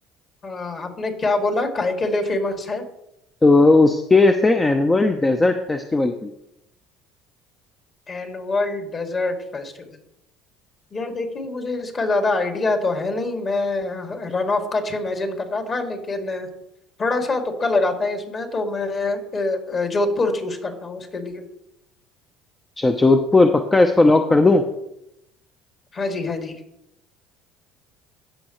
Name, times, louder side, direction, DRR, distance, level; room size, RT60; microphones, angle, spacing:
voice 1, 0.4-2.8 8.1-9.9 10.9-16.5 17.0-21.4 25.9-26.6, left 2 dB, 40° left, 4 dB, 2.3 m, -25 dB
voice 2, 3.4-6.3 22.8-24.6, left 2 dB, 20° left, 6 dB, 0.7 m, -16 dB
16.5 x 6.3 x 3.1 m, 0.85 s
hypercardioid pair, 70°, 0 cm